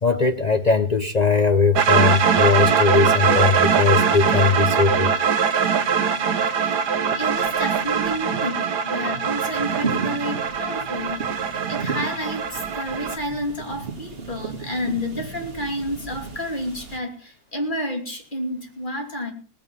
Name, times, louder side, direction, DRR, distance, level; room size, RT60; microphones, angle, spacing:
voice 1, 0.0-5.1, left 4 dB, 65° left, 8 dB, 0.4 m, -19 dB
sound 1, 1.8-13.2, right 6 dB, 70° right, 1.7 m, -22 dB
sound 2, 4.0-17.0, right 4 dB, 35° right, 2.3 m, -36 dB
voice 2, 6.4-6.7 7.1-19.3, left 1 dB, 30° left, 2 dB, 3.0 m, -30 dB
18.5 x 8.7 x 5.5 m, 0.42 s
omnidirectional pair, 1.8 m